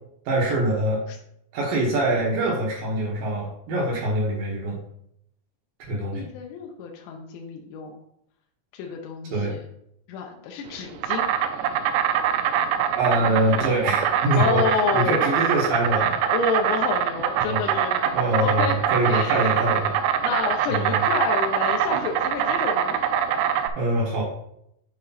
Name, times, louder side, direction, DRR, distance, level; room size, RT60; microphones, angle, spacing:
voice 1, 0.3-1.0 1.5-4.8 5.9-6.3 9.3-9.6 13.0-14.7 14.9-16.2 17.4-17.6 18.1-20.0 20.7-21.1 23.8-24.2, right 1 dB, 65° right, -2 dB, 2.3 m, -24 dB
voice 2, 6.1-8.0 8.7-9.6 10.1-11.3 14.4-15.2 16.3-18.2 18.4-18.8 19.0-19.6 20.2-23.0, left 6 dB, 80° left, 1 dB, 2.8 m, -29 dB
Insect, 10.7-23.7, right 9 dB, 90° right, 3.2 m, -24 dB
8.6 x 4.4 x 4.1 m, 0.74 s
omnidirectional pair, 5.6 m